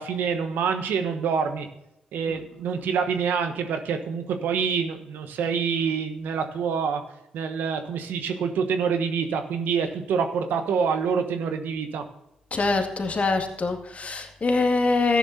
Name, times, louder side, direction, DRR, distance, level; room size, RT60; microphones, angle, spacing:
voice 1, 0.0-1.7 2.1-7.0 7.3-12.0, right 6 dB, 75° right, 7 dB, 1.1 m, -26 dB
voice 2, 12.5-15.2, left 3 dB, 45° left, 4 dB, 2.0 m, -24 dB
13.5 x 11.0 x 2.7 m, 0.86 s
hypercardioid pair, 40°, 3 cm